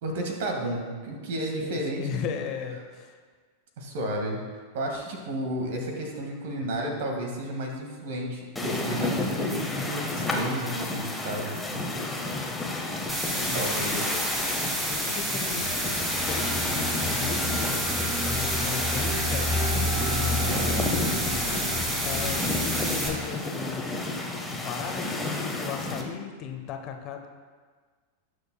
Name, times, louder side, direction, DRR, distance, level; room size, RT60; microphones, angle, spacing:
voice 1, 0.0-2.3 3.8-4.4 4.7-12.1 13.5-14.1, right 1 dB, 55° right, 2 dB, 1.9 m, -32 dB
voice 2, 1.5-3.2 13.3-14.2 14.9-15.9 16.3-17.7 18.2-21.0 22.0-23.9 24.5-27.3, left 7 dB, 40° left, 5 dB, 0.9 m, -36 dB
sound 1, 8.6-26.0, left 2 dB, 5° left, 1.3 m, -32 dB
sound 2, 13.1-23.1, equal, 15° right, 2.9 m, -30 dB
sound 3, 15.6-23.2, left 1 dB, 35° right, 2.1 m, -32 dB
19.0 x 6.6 x 2.3 m, 1.5 s
figure-of-eight pair, 90°, 0 cm